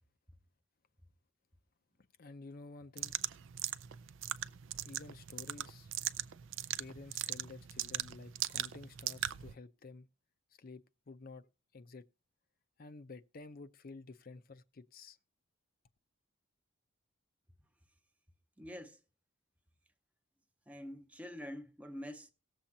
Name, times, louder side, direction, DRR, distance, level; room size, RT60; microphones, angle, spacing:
voice 1, 2.2-3.2 4.8-5.9 6.8-10.1 10.6-12.0 12.8-15.2, left 3 dB, 45° left, 0.5 m, -51 dB
sound 1, 3.0-9.5, right 12 dB, 60° right, 0.4 m, -40 dB
voice 2, 18.6-19.0 20.7-22.3, equal, 5° right, 0.6 m, -46 dB
18.5 x 7.3 x 2.7 m
head